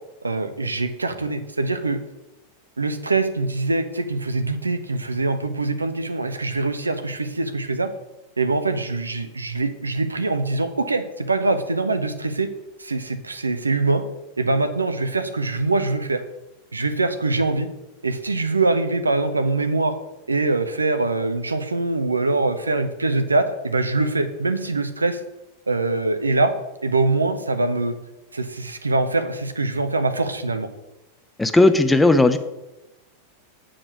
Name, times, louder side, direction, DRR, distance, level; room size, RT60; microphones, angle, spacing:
voice 1, 0.2-2.0 2.8-7.9 8.4-12.5 12.8-14.0 14.4-16.2 16.7-17.7 18.0-19.9 20.3-25.2 25.7-26.5 26.8-27.9 28.3-30.7, right 3 dB, 80° right, 10 dB, 0.8 m, -23 dB
voice 2, 31.4-32.4, left 2 dB, 10° left, 9 dB, 0.7 m, -15 dB
8.6 x 5.1 x 6.1 m, 0.98 s
figure-of-eight pair, 90°, 0 cm